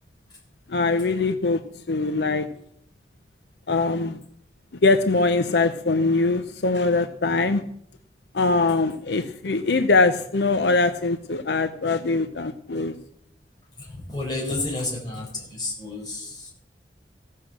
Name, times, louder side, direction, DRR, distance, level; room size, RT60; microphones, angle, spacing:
voice 1, 0.7-1.6 1.9-2.5 3.7-4.2 4.8-7.6 8.3-12.9, left 3 dB, 75° left, 10 dB, 0.7 m, -22 dB
voice 2, 14.1-16.5, left 2 dB, 25° left, -2 dB, 5.0 m, -30 dB
16.0 x 6.5 x 7.3 m, 0.69 s
head